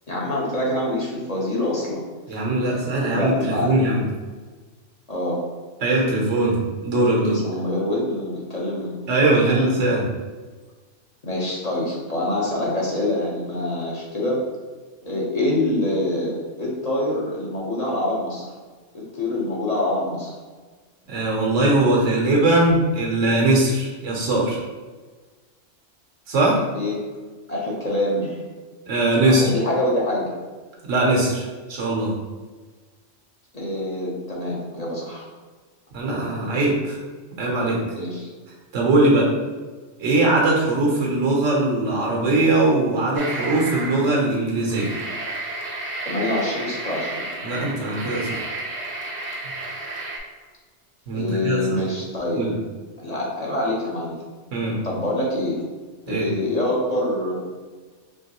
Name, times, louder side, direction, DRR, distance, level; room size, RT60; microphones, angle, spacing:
voice 1, 0.1-2.0 2.3-2.4 2.6-3.7 5.1-5.4 7.2-8.9 9.5-9.7 11.2-14.4 15.0-18.5 18.9-20.3 26.7-27.0 27.5-28.5 29.3-30.3 33.5-35.3 37.9-38.3 46.0-47.1 51.1-52.5 53.0-54.2 54.8-55.6 56.1-57.3, left 1 dB, 40° left, -5 dB, 0.8 m, -25 dB
voice 2, 2.3-4.0 5.8-6.6 6.8-7.4 9.1-10.1 21.1-24.6 26.3-26.6 28.9-29.5 30.8-32.1 35.9-37.0 37.4-37.8 38.7-39.3 40.0-45.0 47.4-48.4 49.4-49.5 51.1-51.8 52.4-52.5 54.5-54.8 56.1-56.3, right 2 dB, 85° right, -2 dB, 1.3 m, -20 dB
sound 1, 43.2-44.2 44.6-50.2, right 2 dB, 45° right, 0.6 m, -32 dB
4.5 x 3.0 x 2.9 m, 1.4 s
omnidirectional pair, 1.2 m